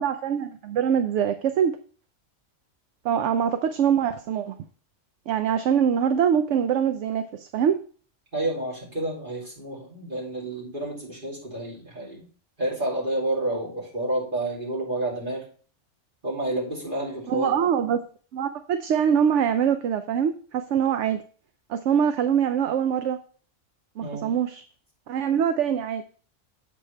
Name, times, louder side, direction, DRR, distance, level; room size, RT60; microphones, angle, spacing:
voice 1, 0.0-1.7 3.0-4.5 5.3-7.8 17.3-18.0 18.3-21.2 21.7-23.2 24.0-24.6 25.1-26.0, right 8 dB, 75° right, 9 dB, 0.9 m, -23 dB
voice 2, 8.3-12.3 12.6-15.4 16.2-17.6 24.0-24.3, right 1 dB, 40° right, -5 dB, 3.0 m, -29 dB
7.7 x 6.3 x 3.3 m, 0.43 s
omnidirectional pair, 1.3 m